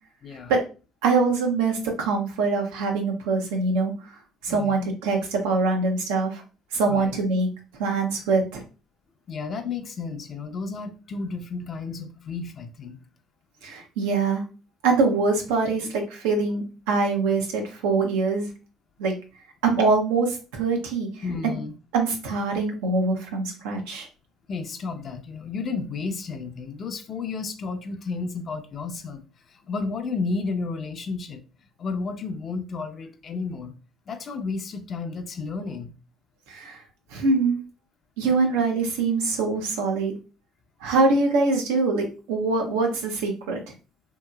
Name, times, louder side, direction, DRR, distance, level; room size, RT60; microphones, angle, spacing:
voice 1, 1.0-3.9 4.4-6.4 6.7-7.5 7.8-8.6 13.6-14.4 14.8-18.5 19.0-19.1 19.6-21.1 21.4-21.6 21.9-24.1 36.5-36.8 37.1-37.6 38.2-40.1 40.8-43.7, right 3 dB, 85° right, 0.7 m, -23 dB
voice 2, 9.3-13.0 21.2-21.7 24.5-29.2 29.7-31.4 31.8-33.7 34.1-35.9, left 4 dB, 50° left, 0.6 m, -32 dB
2.8 x 2.8 x 2.3 m
hypercardioid pair, 65°, 0 cm